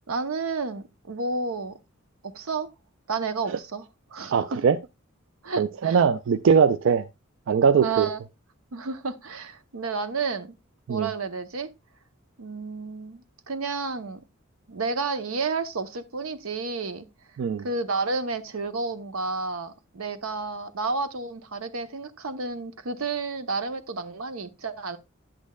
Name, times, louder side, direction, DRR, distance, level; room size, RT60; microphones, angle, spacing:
voice 1, 0.1-1.7 2.3-2.7 3.1-3.8 4.1-4.3 5.4-6.0 7.8-8.2 8.7-10.5 10.9-11.7 12.4-14.2 14.7-17.1 17.6-25.0, right 4 dB, 90° right, 0.8 m, -31 dB
voice 2, 4.3-4.8 5.6-7.0 7.5-8.1 10.9-11.1 17.4-17.7, right 6 dB, 65° right, 0.3 m, -21 dB
10.0 x 8.4 x 2.3 m
head